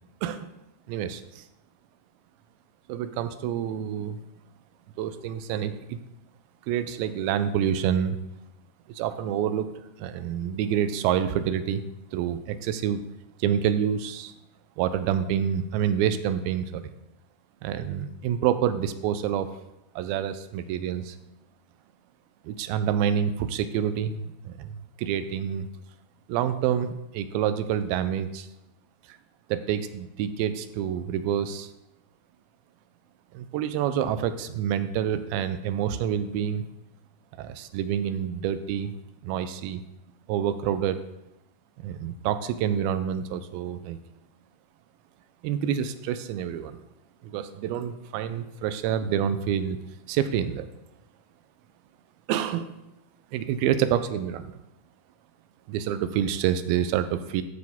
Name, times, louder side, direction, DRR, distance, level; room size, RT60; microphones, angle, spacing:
voice 1, 0.9-1.4 2.9-4.2 5.0-6.0 6.7-8.2 8.9-9.7 10.0-11.8 12.1-13.0 13.4-14.3 14.8-16.9 17.6-19.5 20.0-21.2 22.4-25.7 26.3-28.5 29.1-29.2 29.5-31.7 33.3-36.6 37.4-38.9 39.2-39.8 40.3-41.0 41.8-44.0 45.4-46.8 47.2-49.8 50.1-50.7 52.3-52.7 53.3-54.6 55.7-57.4, right 9 dB, 85° right, 11 dB, 2.3 m, -27 dB
13.0 x 4.9 x 3.5 m, 0.90 s
omnidirectional pair, 4.4 m